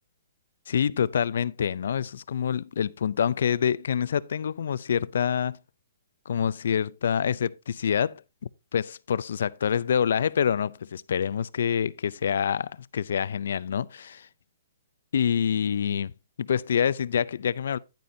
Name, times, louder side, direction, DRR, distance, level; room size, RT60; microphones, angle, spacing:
voice 1, 0.7-5.6 6.3-8.2 8.7-14.3 15.1-16.1 16.4-17.8, left 8 dB, 70° left, 0.4 m, -26 dB
10.5 x 9.3 x 2.7 m
hypercardioid pair, 165°, 0 cm